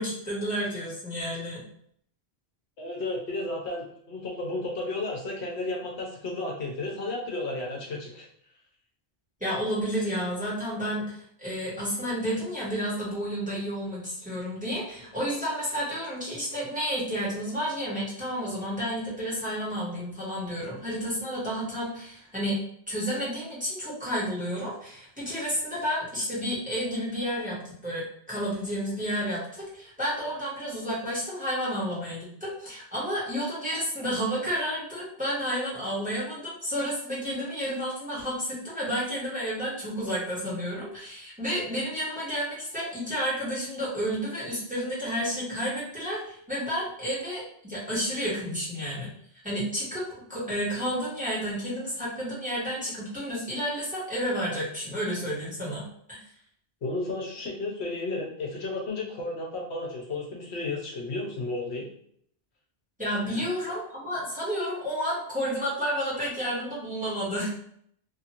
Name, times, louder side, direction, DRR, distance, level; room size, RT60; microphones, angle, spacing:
voice 1, 0.0-1.6 9.4-22.6 22.9-49.1 49.4-50.0 50.3-55.8 56.1-56.2 63.0-67.5, equal, 5° right, -8 dB, 1.2 m, -31 dB
voice 2, 2.8-8.3 56.8-61.9 63.3-63.5, left 2 dB, 75° left, -2 dB, 1.0 m, -33 dB
2.8 x 2.5 x 2.8 m, 0.66 s
omnidirectional pair, 1.1 m